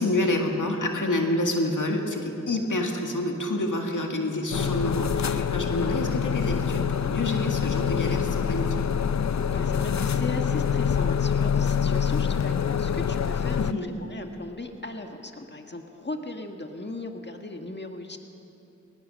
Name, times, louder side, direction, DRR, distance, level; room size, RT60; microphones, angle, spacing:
voice 1, 0.0-8.9 13.6-13.9, left 1 dB, 90° left, 2 dB, 2.0 m, -28 dB
sound 1, 4.5-13.7, left 7 dB, 65° left, 0.6 m, -25 dB
voice 2, 9.5-13.7 14.0-18.2, left 2 dB, 35° left, 4 dB, 1.7 m, -37 dB
21.0 x 19.5 x 6.4 m, 2.9 s
wide cardioid pair, 45°, 30 cm